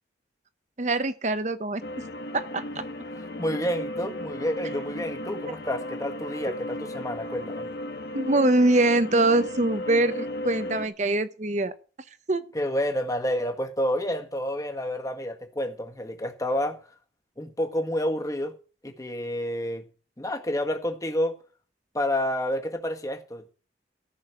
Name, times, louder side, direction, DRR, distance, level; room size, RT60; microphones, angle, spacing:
voice 1, 0.8-1.8 2.3-2.8 8.1-11.7 12.3-12.4, right 2 dB, 40° right, 1.0 m, -23 dB
sound 1, 1.8-10.9, left 1 dB, 60° left, 1.4 m, -35 dB
voice 2, 3.4-7.7 12.5-16.8 17.4-18.5 18.8-19.9 20.2-21.4 21.9-23.5, left 1 dB, 20° left, 1.7 m, -29 dB
14.5 x 6.4 x 9.2 m
head